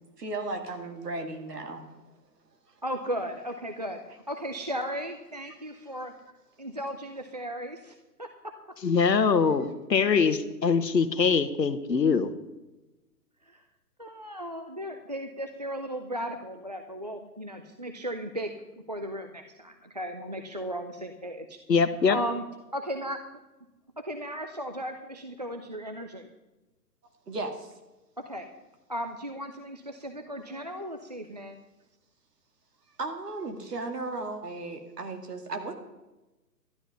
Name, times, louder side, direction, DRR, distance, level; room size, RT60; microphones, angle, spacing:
voice 1, 0.2-1.9 27.3-27.7 30.5-30.9 33.0-35.7, right 2 dB, 65° right, 5 dB, 2.4 m, -35 dB
voice 2, 2.8-4.0 4.3-6.1 6.6-8.5 10.0-10.1 13.4-13.6 14.0-18.5 18.9-21.6 22.1-22.4 22.7-23.2 24.0-26.3 28.3-28.5 28.9-31.5, equal, 25° right, 6 dB, 0.4 m, -36 dB
voice 3, 8.8-12.3 21.7-22.2, left 5 dB, 80° left, 12 dB, 1.3 m, -23 dB
12.5 x 11.5 x 5.5 m, 1.1 s
figure-of-eight pair, 135°, 50 cm